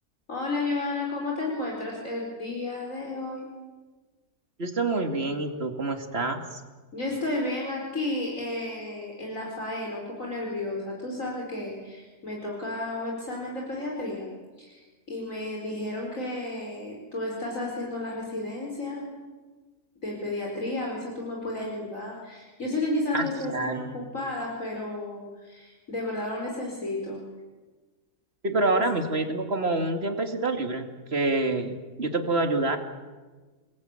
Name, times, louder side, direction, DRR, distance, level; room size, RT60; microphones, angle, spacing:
voice 1, 0.3-3.5 6.9-14.3 14.6-19.1 20.0-27.2, left 2 dB, 55° left, -2 dB, 5.2 m, -32 dB
voice 2, 4.6-6.6 23.1-23.9 28.4-32.8, right 2 dB, 40° right, 5 dB, 2.8 m, -27 dB
29.5 x 21.0 x 9.1 m, 1.3 s
omnidirectional pair, 1.7 m